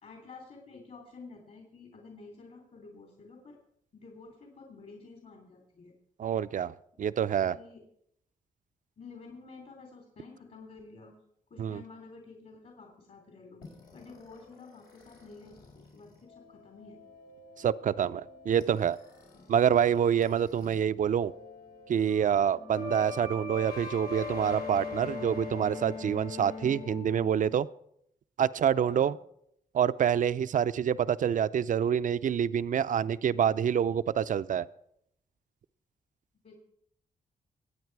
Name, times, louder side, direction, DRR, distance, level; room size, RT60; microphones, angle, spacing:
voice 1, 0.0-3.6 3.9-5.9 7.5-7.8 9.0-11.1 11.5-13.6 13.9-17.0 19.3-19.4 28.8-29.1 36.4-36.6, left 4 dB, 60° left, 1 dB, 3.2 m, -50 dB
voice 2, 6.2-7.6 11.6-11.8 17.6-19.0 19.5-21.3 21.9-27.7 28.4-29.2 29.7-34.6, right 8 dB, 55° right, 15 dB, 0.5 m, -27 dB
sound 1, 13.6-20.8 21.1-27.5, left 4 dB, 90° left, 4.4 m, -43 dB
23.5 x 8.9 x 4.7 m, 0.73 s
cardioid pair, 95°, 15 cm